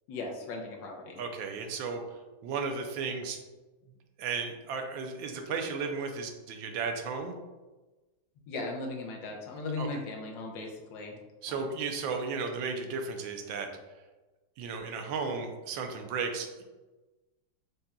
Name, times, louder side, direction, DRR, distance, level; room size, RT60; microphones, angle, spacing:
voice 1, 0.1-1.2 8.5-11.1 11.5-11.6, left 3 dB, 80° left, 1 dB, 1.4 m, -37 dB
voice 2, 1.2-3.4 4.2-7.4 9.8-9.9 11.4-13.7 14.6-16.6, right 5 dB, 80° right, 4 dB, 1.4 m, -34 dB
5.0 x 4.1 x 2.2 m, 1.2 s
omnidirectional pair, 2.1 m